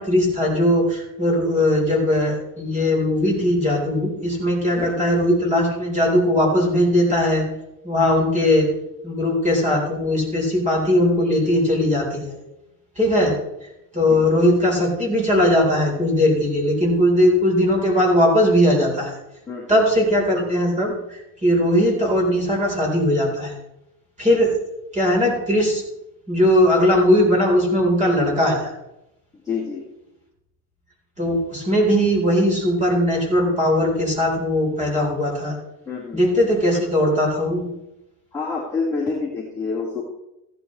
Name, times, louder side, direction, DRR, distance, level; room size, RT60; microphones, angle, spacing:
voice 1, 0.0-7.4 7.8-8.7 9.0-12.4 13.0-13.3 13.6-19.2 19.7-23.5 24.2-24.5 24.9-25.8 26.3-28.7 31.2-35.6 36.1-37.6, left 1 dB, 15° right, -2 dB, 4.2 m, -19 dB
voice 2, 29.4-29.8 35.9-36.2 38.3-40.0, left 4 dB, 5° left, -8 dB, 2.2 m, -27 dB
15.5 x 10.5 x 3.3 m, 0.89 s
cardioid pair, 175°, 46 cm